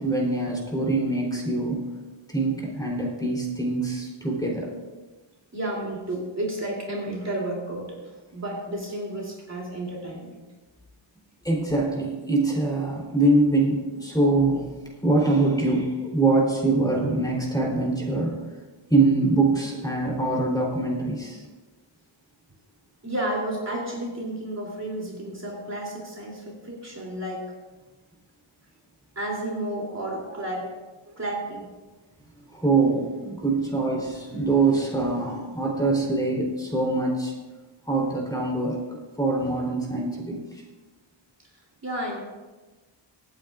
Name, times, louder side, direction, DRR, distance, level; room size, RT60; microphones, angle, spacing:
voice 1, 0.0-1.8 2.3-4.7 11.4-14.7 15.0-18.4 18.9-21.5 32.5-37.3 37.8-38.8 39.2-40.6, right 2 dB, 10° left, -3 dB, 3.2 m, -24 dB
voice 2, 5.5-8.0 8.3-10.3 23.0-27.5 29.1-30.8 31.1-31.7 41.8-42.2, right 1 dB, 30° right, -2 dB, 2.8 m, -31 dB
25.0 x 8.8 x 2.4 m, 1.2 s
wide cardioid pair, 100°, 50 cm